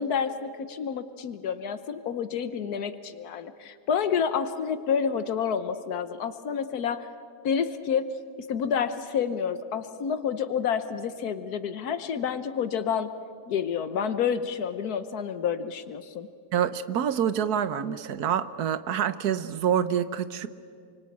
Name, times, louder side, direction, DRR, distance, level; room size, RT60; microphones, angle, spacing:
voice 1, 0.0-7.1 7.4-8.1 8.4-13.1 13.5-16.3, left 7 dB, 85° left, 11 dB, 1.5 m, -29 dB
voice 2, 16.5-20.5, right 9 dB, 90° right, 13 dB, 1.5 m, -27 dB
27.5 x 25.0 x 8.5 m, 2.3 s
omnidirectional pair, 1.6 m